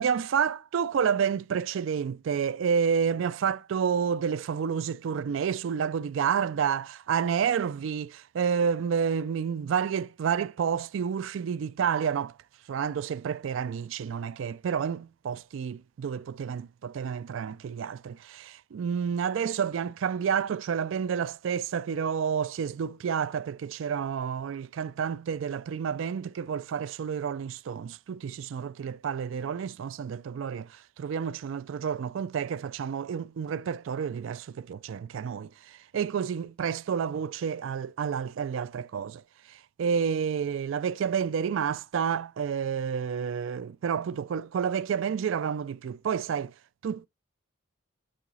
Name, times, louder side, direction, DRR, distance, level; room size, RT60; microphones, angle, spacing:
voice 1, 0.0-12.3 12.7-39.2 39.5-46.5 46.8-47.1, right 7 dB, 70° right, 0.3 m, -30 dB
6.9 x 4.7 x 6.1 m
head